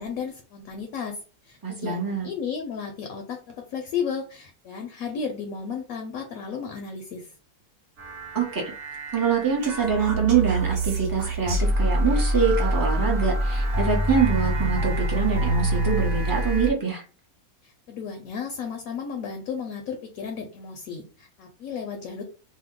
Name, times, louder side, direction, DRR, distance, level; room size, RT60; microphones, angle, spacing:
voice 1, 0.0-7.3 17.6-22.2, left 6 dB, 70° left, 3 dB, 0.9 m, -34 dB
voice 2, 1.6-2.3 8.3-8.6 9.1-17.0, right 6 dB, 25° right, -1 dB, 0.4 m, -24 dB
sound 1, 8.0-16.7, right 1 dB, 60° right, 0.9 m, -25 dB
2.8 x 2.0 x 3.6 m, 0.37 s
omnidirectional pair, 1.7 m